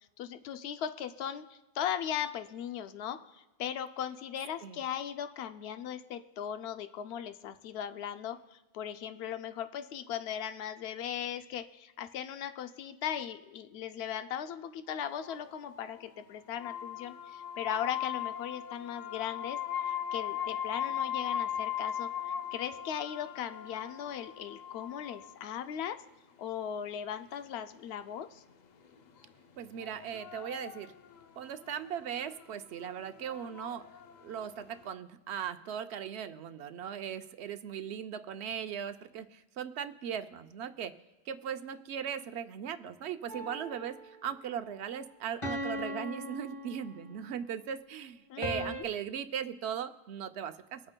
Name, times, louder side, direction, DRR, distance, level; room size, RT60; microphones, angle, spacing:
voice 1, 0.2-26.0 26.4-28.4 48.3-48.9, left 9 dB, 80° left, 9 dB, 0.8 m, -38 dB
sound 1, 15.1-16.0 16.6-25.4 27.4-27.5 29.8-31.2 31.7-31.8 31.9-32.4 33.1-34.7, left 9 dB, 50° left, 0.6 m, -38 dB
voice 2, 29.6-30.9 31.4-33.9 34.2-40.9 41.3-50.8, right 8 dB, 85° right, 9 dB, 0.9 m, -38 dB
sound 2, 43.3-44.3 45.4-47.3 48.4-48.8, equal, 30° left, 1.4 m, -39 dB
25.0 x 8.6 x 2.2 m, 1.0 s
omnidirectional pair, 1.1 m